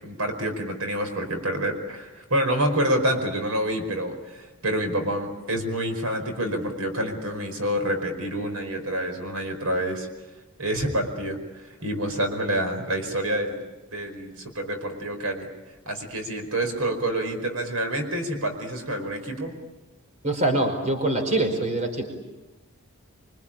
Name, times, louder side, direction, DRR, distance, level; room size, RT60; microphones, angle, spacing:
voice 1, 0.0-10.1 10.6-13.6 13.9-15.5 15.8-19.6, right 1 dB, 80° right, 5 dB, 5.0 m, -27 dB
voice 2, 20.2-22.0, right 2 dB, 35° right, 5 dB, 4.9 m, -24 dB
26.0 x 25.5 x 8.8 m, 1.1 s
head